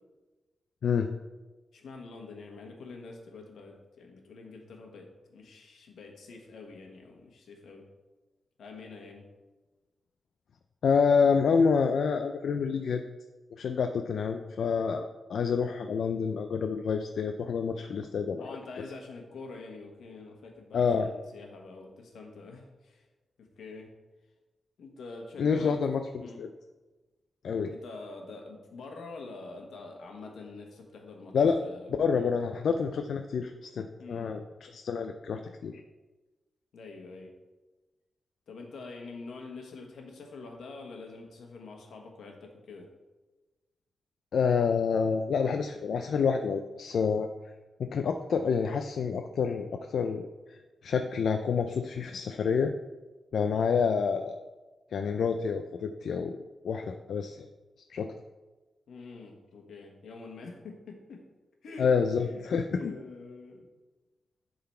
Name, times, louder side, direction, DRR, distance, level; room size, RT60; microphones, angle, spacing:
voice 1, 1.7-7.9 8.6-9.3 18.4-23.0 23.4-23.9 24.8-25.8 26.2-26.4 27.7-32.3 34.0-34.4 36.7-37.3 38.5-42.9 58.9-61.2 61.6-61.9 62.2-62.4 62.8-63.7, left 3 dB, 85° left, 2 dB, 1.3 m, -46 dB
voice 2, 10.8-13.0 13.6-18.4 20.7-21.1 25.4-26.0 26.4-26.5 27.4-27.7 31.3-31.6 32.0-34.4 34.7-35.8 44.3-47.3 47.8-52.7 53.3-54.4 54.9-56.4 56.6-57.5 57.9-58.1 61.8-62.9, left 6 dB, 70° left, 6 dB, 0.4 m, -28 dB
10.5 x 3.9 x 4.4 m, 1.2 s
wide cardioid pair, 160°, 0 cm